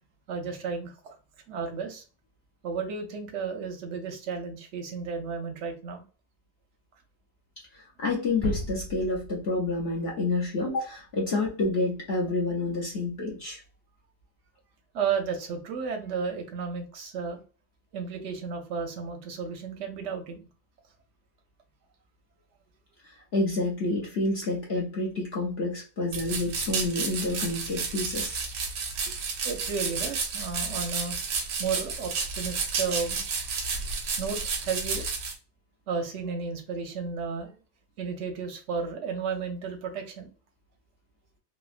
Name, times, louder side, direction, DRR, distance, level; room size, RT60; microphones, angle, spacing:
voice 1, 0.3-1.2 1.5-2.0 2.6-6.0 14.9-17.4 17.9-20.5 29.4-31.2 31.6-33.2 34.2-35.0 35.9-37.5 38.0-40.3, right 5 dB, 60° right, 4 dB, 0.8 m, -33 dB
voice 2, 7.7-13.6 23.0-28.4, left 2 dB, 55° left, -2 dB, 0.7 m, -29 dB
sound 1, 8.4-10.4 10.7-10.9, right 1 dB, 30° left, 0.9 m, -37 dB
sound 2, 26.1-35.3, right 5 dB, 90° right, 1.4 m, -31 dB
3.4 x 2.0 x 2.4 m, 0.35 s
omnidirectional pair, 1.8 m